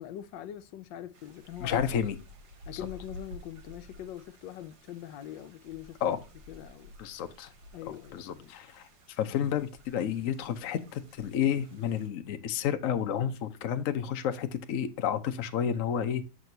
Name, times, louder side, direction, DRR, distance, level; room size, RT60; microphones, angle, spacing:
voice 1, 0.0-1.8 2.7-6.2 6.5-6.9 7.7-8.5, left 11 dB, 80° left, 1.3 m, -43 dB
sound 1, 1.1-12.1, equal, 60° right, 1.9 m, -51 dB
voice 2, 1.6-2.2 6.0-6.2 7.0-7.5 7.9-8.9 9.2-16.2, left 9 dB, 60° left, 0.9 m, -31 dB
6.8 x 6.2 x 2.7 m
omnidirectional pair, 2.0 m